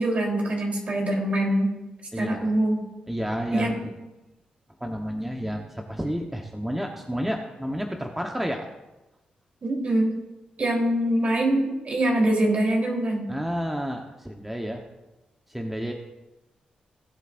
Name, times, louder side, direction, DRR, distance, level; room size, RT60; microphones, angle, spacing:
voice 1, 0.0-1.7 2.2-2.8 3.5-3.7 9.6-10.1 10.6-13.3, right 1 dB, 55° right, -1 dB, 3.6 m, -23 dB
voice 2, 2.1-2.5 3.1-3.9 4.8-8.7 13.3-14.8 15.5-15.9, equal, 10° right, 2 dB, 1.1 m, -30 dB
19.5 x 8.1 x 2.6 m, 1.0 s
cardioid pair, 65°, 3 cm